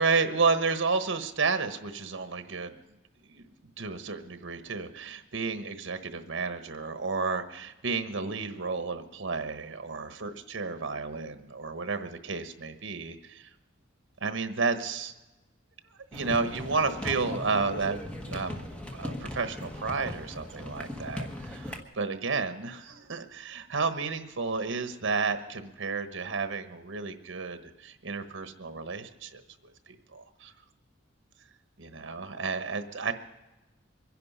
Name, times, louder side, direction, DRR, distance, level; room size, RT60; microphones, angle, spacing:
voice 1, 0.0-2.7 3.3-3.5 3.8-13.5 14.2-15.1 16.1-29.4 29.9-30.5 31.8-33.1, right 4 dB, 70° right, 9 dB, 1.1 m, -31 dB
sound 1, 16.1-21.8, left 1 dB, 5° left, 1.3 m, -38 dB
23.5 x 11.0 x 5.5 m, 1.1 s
head